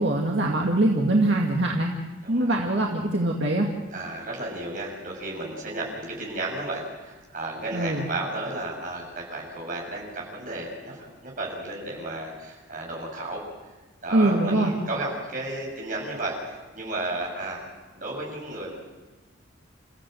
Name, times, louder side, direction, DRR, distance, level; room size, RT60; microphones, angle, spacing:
voice 1, 0.0-1.9 2.3-3.7 7.7-8.1 14.1-14.7, right 1 dB, 65° right, -1 dB, 2.2 m, -23 dB
voice 2, 2.2-2.6 3.9-13.4 14.0-17.7 17.9-18.8, right 2 dB, 40° right, -2 dB, 7.4 m, -33 dB
29.5 x 15.0 x 7.9 m, 1.2 s
head